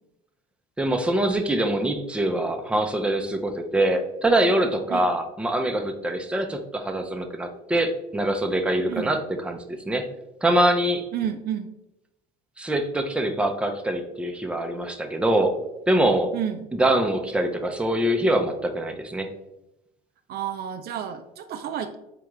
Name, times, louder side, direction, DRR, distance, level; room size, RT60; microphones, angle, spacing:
voice 1, 0.8-9.2 9.4-9.6 9.8-10.1 10.4-11.1 12.6-15.6 15.9-16.3 16.7-19.3, right 1 dB, 5° right, 4 dB, 0.6 m, -24 dB
voice 2, 11.1-11.7 16.3-16.6 20.3-22.0, right 9 dB, 55° right, 8 dB, 0.4 m, -30 dB
3.7 x 3.3 x 3.1 m, 0.89 s
supercardioid pair, 80°, 19 cm